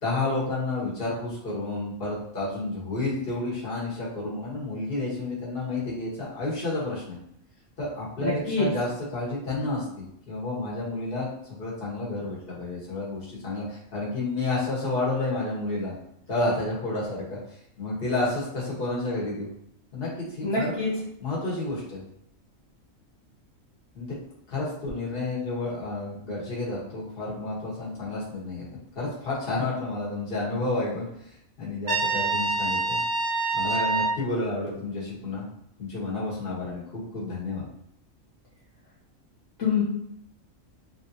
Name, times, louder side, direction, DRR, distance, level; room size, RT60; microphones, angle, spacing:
voice 1, 0.0-7.2 7.8-15.9 16.3-19.5 19.9-20.9 21.2-22.0 23.9-24.1 24.5-28.7 28.9-33.0 33.5-35.5 35.8-37.6, left 2 dB, 45° left, -6 dB, 1.4 m, -30 dB
voice 2, 8.2-8.7 20.4-20.9 39.6-39.8, left 4 dB, 70° left, -8 dB, 1.1 m, -25 dB
Trumpet, 31.9-34.2, right 3 dB, 70° right, 0.3 m, -26 dB
3.2 x 2.7 x 2.7 m, 0.73 s
omnidirectional pair, 1.4 m